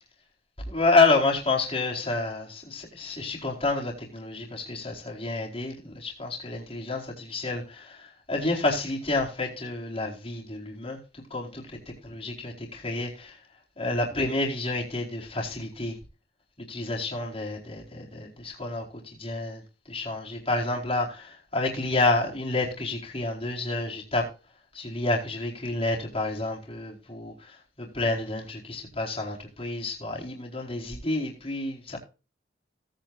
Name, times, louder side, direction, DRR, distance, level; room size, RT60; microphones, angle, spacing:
voice 1, 0.7-7.6 8.3-11.0 11.3-11.8 12.0-13.3 13.8-15.9 16.6-18.8 19.2-19.6 19.9-21.3 21.5-24.2 24.7-27.3 27.8-32.0, left 2 dB, 30° left, -2 dB, 4.5 m, -29 dB
18.5 x 9.1 x 2.6 m, 0.33 s
head